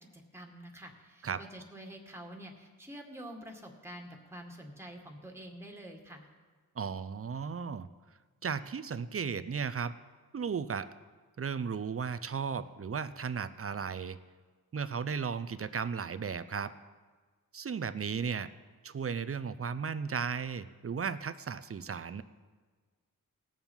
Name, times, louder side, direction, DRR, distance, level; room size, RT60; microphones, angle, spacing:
voice 1, 0.1-6.3, right 1 dB, 5° right, 1 dB, 1.9 m, -47 dB
voice 2, 6.8-7.9 8.4-10.0 10.3-10.9 11.4-14.2 14.7-16.7 17.5-18.5 18.8-22.2, right 6 dB, 40° right, 13 dB, 0.6 m, -35 dB
18.0 x 7.2 x 5.5 m, 1.4 s
cardioid pair, 65°, 36 cm